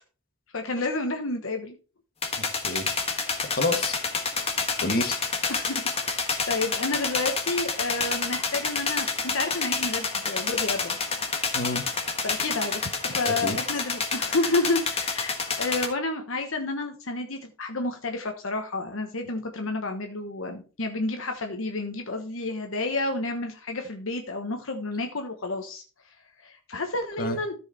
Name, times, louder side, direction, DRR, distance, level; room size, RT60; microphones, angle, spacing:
voice 1, 0.5-1.7 5.5-11.0 12.2-25.8 26.4-27.5, left 2 dB, 65° left, 5 dB, 1.1 m, -30 dB
sound 1, 2.2-15.9, left 4 dB, 30° left, 1.5 m, -29 dB
voice 2, 2.4-2.9 3.4-4.0 4.8-5.2 11.5-11.8 13.4-13.6 27.2-27.4, left 2 dB, 45° left, 6 dB, 1.6 m, -28 dB
13.5 x 4.8 x 4.2 m, 0.34 s
head